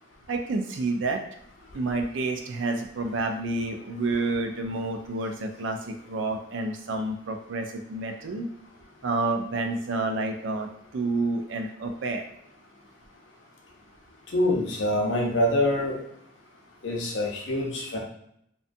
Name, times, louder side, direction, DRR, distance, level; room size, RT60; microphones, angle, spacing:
voice 1, 0.3-1.2 1.7-8.5 9.0-12.2, right 2 dB, 75° right, 4 dB, 0.4 m, -29 dB
voice 2, 14.3-16.0 16.8-18.0, left 1 dB, 70° left, -1 dB, 0.6 m, -25 dB
2.6 x 2.2 x 2.5 m, 0.72 s
head